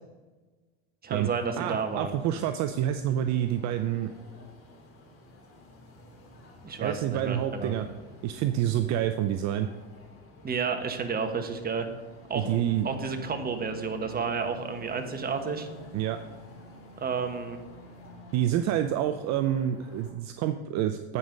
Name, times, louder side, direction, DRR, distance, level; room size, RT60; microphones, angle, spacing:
voice 1, 1.0-2.1 6.6-7.7 10.4-11.9 12.3-12.5 12.8-15.7 17.0-17.6, right 5 dB, 30° right, 6 dB, 1.3 m, -31 dB
sound 1, 1.1-20.1, left 1 dB, 40° left, 2.6 m, -52 dB
voice 2, 1.6-4.1 6.8-7.9 8.2-9.7 12.3-12.9 15.9-16.2 18.3-21.2, right 11 dB, 55° right, 9 dB, 0.6 m, -28 dB
Bass guitar, 12.4-18.6, right 1 dB, 85° left, 1.5 m, -46 dB
8.5 x 5.4 x 6.5 m, 1.3 s
hypercardioid pair, 85°, 33 cm